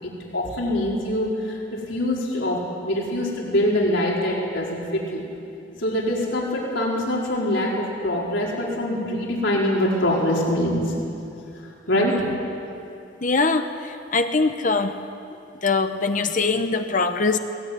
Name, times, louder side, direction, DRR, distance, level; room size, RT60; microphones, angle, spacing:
voice 1, 0.0-5.2 5.7-10.9 11.6-12.2, left 1 dB, 70° left, -3 dB, 4.9 m, -24 dB
voice 2, 13.2-15.0 15.6-17.4, left 3 dB, 40° left, 8 dB, 1.0 m, -22 dB
22.0 x 19.5 x 9.6 m, 2.6 s
head